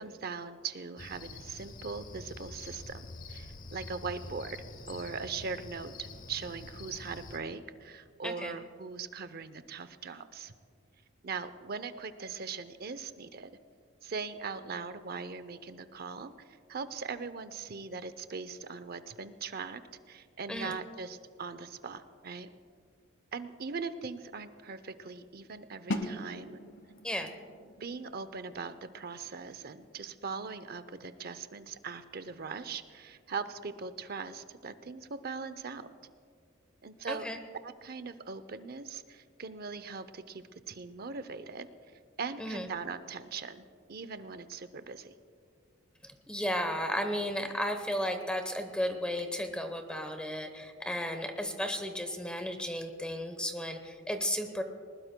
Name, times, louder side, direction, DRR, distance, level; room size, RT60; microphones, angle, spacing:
voice 1, 0.0-3.0 3.3-4.6 4.9-10.5 11.2-13.5 14.0-19.8 20.1-22.5 23.3-26.6 27.8-35.9 36.8-37.3 37.6-41.7 42.2-45.1, right 5 dB, 50° right, 12 dB, 0.6 m, -40 dB
Cricket, 1.0-7.4, left 2 dB, 45° left, 0.9 m, -46 dB
voice 2, 8.2-8.6 20.5-20.7 27.0-27.3 37.1-37.4 42.4-42.7 46.0-54.6, equal, 5° left, 6 dB, 0.9 m, -34 dB
sound 1, 25.9-31.6, left 1 dB, 75° left, 1.2 m, -42 dB
20.0 x 20.0 x 2.2 m, 2.1 s
head